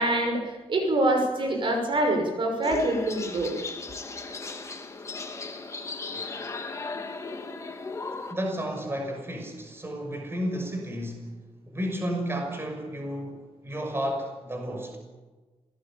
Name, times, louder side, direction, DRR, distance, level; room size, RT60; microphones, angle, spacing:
voice 1, 0.0-3.5, right 1 dB, 50° right, 6.2 m, -25 dB
sound 1, 2.6-8.3, left 3 dB, 30° left, 3.1 m, -36 dB
voice 2, 8.3-11.3 11.7-13.4 13.6-15.0, equal, 20° right, 6.1 m, -32 dB
27.0 x 19.5 x 8.9 m
wide cardioid pair, 125°, 11 cm